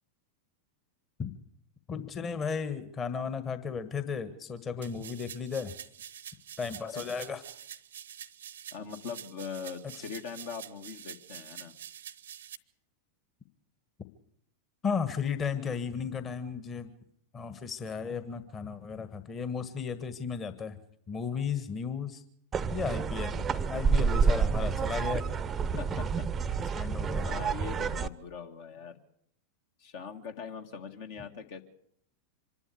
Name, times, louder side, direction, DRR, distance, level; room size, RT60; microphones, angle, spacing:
voice 1, 1.9-5.7 6.6-7.4 14.8-16.9 17.3-20.8 21.1-22.2 22.7-25.2 26.7-27.3, left 6 dB, 25° left, 10 dB, 1.6 m, -34 dB
sound 1, 4.8-12.6, right 9 dB, 65° right, 0.9 m, -46 dB
voice 2, 8.7-11.8 25.8-26.9 27.2-29.0 29.8-31.6, left 6 dB, 50° left, 5 dB, 1.8 m, -41 dB
sound 2, 22.5-28.1, right 5 dB, 20° right, 0.8 m, -29 dB
25.5 x 11.5 x 8.6 m, 0.70 s
figure-of-eight pair, 90°, 0 cm